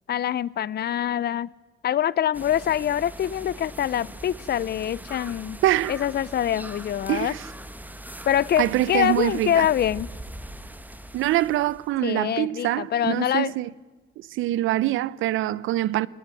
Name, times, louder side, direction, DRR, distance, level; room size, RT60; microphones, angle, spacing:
voice 1, 0.1-1.5 1.8-5.6 5.9-7.3 8.2-10.1 12.0-13.5, left 10 dB, 55° left, 0.6 m, -25 dB
sound 1, 2.3-12.0, right 1 dB, 10° right, 1.6 m, -41 dB
voice 2, 5.6-6.0 7.1-7.4 8.6-9.7 11.1-13.7 14.2-16.1, right 15 dB, 85° right, 0.7 m, -24 dB
19.5 x 19.0 x 9.7 m
cardioid pair, 90°, 20 cm